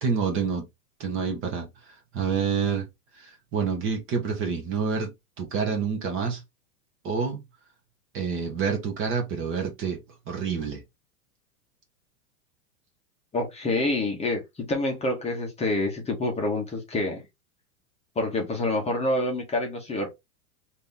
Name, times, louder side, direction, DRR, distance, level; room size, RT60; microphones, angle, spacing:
voice 1, 0.0-0.7 1.0-2.9 3.1-5.1 5.4-6.4 7.0-7.4 8.1-10.0 10.3-10.8, right 6 dB, 30° right, 0.8 m, -28 dB
voice 2, 13.3-17.2 18.2-20.1, left 2 dB, 15° left, 0.9 m, -27 dB
2.9 x 2.7 x 3.6 m
supercardioid pair, 135°, 45 cm